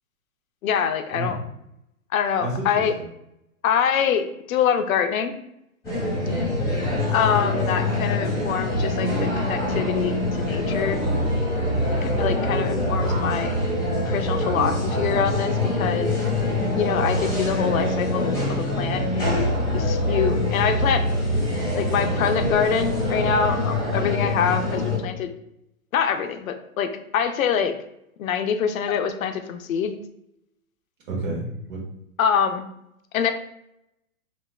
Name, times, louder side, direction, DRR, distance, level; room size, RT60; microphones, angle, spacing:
voice 1, 0.6-1.4 2.1-2.9 3.6-5.3 7.1-11.0 12.0-13.5 14.1-16.1 16.7-21.0 21.7-25.3 25.9-27.7 28.2-29.9 32.2-32.7 33.1-33.3, left 7 dB, 70° left, 8 dB, 0.5 m, -25 dB
voice 2, 1.1-1.4 2.4-3.0 6.1-6.5 31.1-31.8, right 1 dB, 60° right, -2 dB, 1.3 m, -30 dB
sound 1, 5.8-25.0, left 1 dB, 5° left, 1.5 m, -24 dB
3.0 x 2.9 x 2.2 m, 0.80 s
hypercardioid pair, 135°, 43 cm